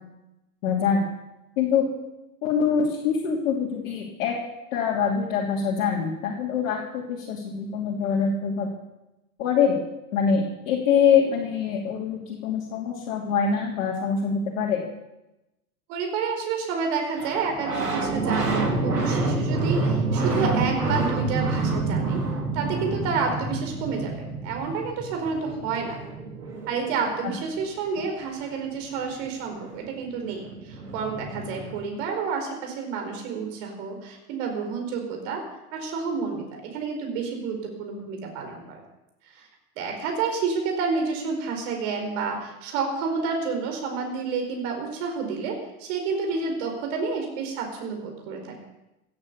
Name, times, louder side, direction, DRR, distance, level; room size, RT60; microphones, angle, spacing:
voice 1, 0.6-1.0 1.6-1.8 2.4-4.3 4.7-8.7 9.4-9.8 10.1-14.8 27.2-27.3, left 6 dB, 55° left, -2 dB, 3.1 m, -24 dB
voice 2, 15.9-22.2 22.5-26.0 26.7-35.4 35.7-38.8 39.3-39.5 39.8-48.6, right 5 dB, 50° right, 3 dB, 4.7 m, -29 dB
sound 1, 17.2-27.6 29.7-29.8 29.9-31.7, right 3 dB, 80° right, 3.1 m, -28 dB
17.0 x 9.8 x 6.9 m, 0.93 s
figure-of-eight pair, 90°, 47 cm